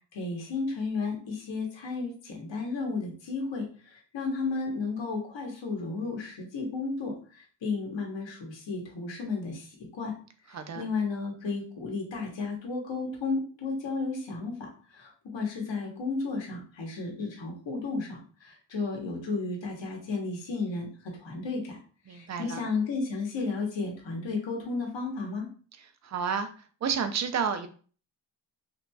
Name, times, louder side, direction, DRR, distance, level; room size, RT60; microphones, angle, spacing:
voice 1, 0.1-10.1 10.5-21.8 22.1-25.5, left 4 dB, 70° left, 0 dB, 1.1 m, -33 dB
voice 2, 10.5-10.8 22.1-22.6 26.0-26.5 26.8-27.7, right 6 dB, 35° right, 8 dB, 0.5 m, -30 dB
2.9 x 2.5 x 2.2 m, 0.41 s
cardioid pair, 45°, 47 cm